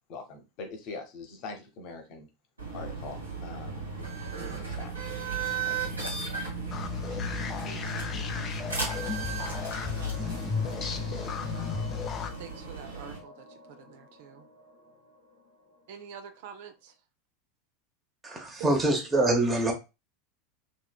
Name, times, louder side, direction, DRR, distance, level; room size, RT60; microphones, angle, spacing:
voice 1, 0.1-2.3 2.7-3.9 4.4-4.9 5.7-5.9, left 3 dB, 45° left, 0.8 m, -43 dB
sound 1, 2.6-13.2, right 5 dB, 80° right, 0.9 m, -36 dB
sound 2, 6.7-12.3, left 7 dB, 30° left, 0.4 m, -34 dB
voice 2, 7.7-8.3 9.9-10.4 11.5-14.5 15.9-16.9, right 8 dB, 55° right, 0.4 m, -48 dB
sound 3, 9.0-16.6, left 2 dB, 85° left, 0.9 m, -50 dB
voice 3, 18.2-19.7, right 2 dB, 20° right, 0.9 m, -25 dB
3.1 x 2.8 x 2.2 m
figure-of-eight pair, 80°, 0 cm